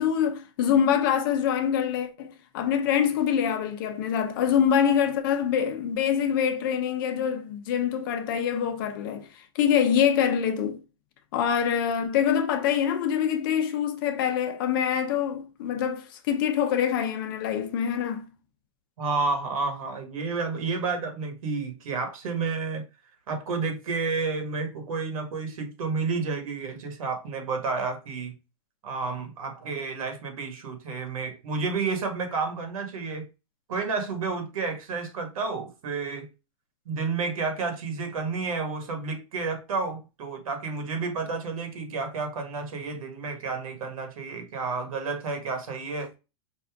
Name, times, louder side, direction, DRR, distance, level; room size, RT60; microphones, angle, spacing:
voice 1, 0.0-10.8 11.3-18.3, left 8 dB, 40° left, 0.7 m, -25 dB
voice 2, 19.0-22.8 23.3-28.3 28.8-33.2 33.7-36.3 36.8-46.1, right 4 dB, 85° right, 1.7 m, -30 dB
5.5 x 2.7 x 3.5 m
supercardioid pair, 175°, 17 cm